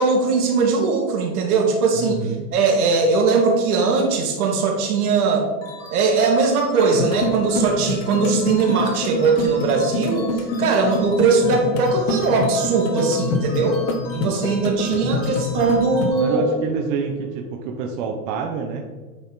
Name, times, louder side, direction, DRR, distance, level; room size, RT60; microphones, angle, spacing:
voice 1, 0.0-2.2 2.5-5.5 5.9-13.8 14.1-16.5, right 4 dB, 70° right, 1 dB, 2.0 m, -20 dB
voice 2, 2.0-2.5 14.9-15.0 16.2-18.8, right 5 dB, 35° right, 2 dB, 0.7 m, -27 dB
sound 1, 5.6-16.8, left 4 dB, 35° left, 1.5 m, -41 dB
sound 2, 6.9-16.1, left 2 dB, 55° left, 1.1 m, -26 dB
9.1 x 4.3 x 3.9 m, 1.3 s
supercardioid pair, 155°, 46 cm